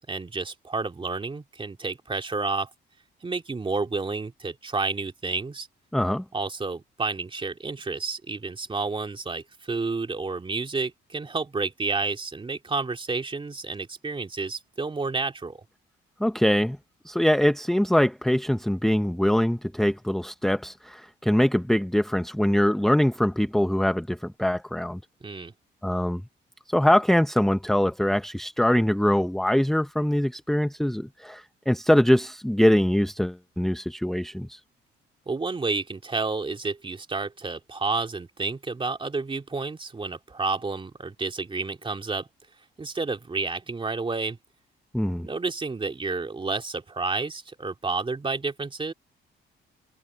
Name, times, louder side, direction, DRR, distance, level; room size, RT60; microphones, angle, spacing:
voice 1, 0.1-2.7 3.2-5.7 6.3-15.6 25.2-25.5 35.3-42.3 42.8-44.4 45.2-48.9, right 3 dB, 25° right, 2.7 m, -30 dB
voice 2, 5.9-6.2 16.2-16.8 17.1-25.0 25.8-26.2 26.7-34.6 44.9-45.3, left 1 dB, ahead, 0.8 m, -23 dB
cardioid pair, 90°, 20 cm